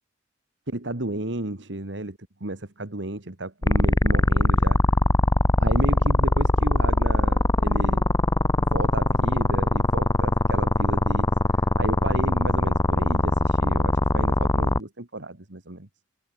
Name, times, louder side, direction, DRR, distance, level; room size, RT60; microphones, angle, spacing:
voice 1, 0.7-4.8 5.6-8.1 8.6-15.9, right 2 dB, 70° right, 2.1 m, -33 dB
sound 1, 3.6-14.8, left 1 dB, 20° left, 1.0 m, -21 dB
head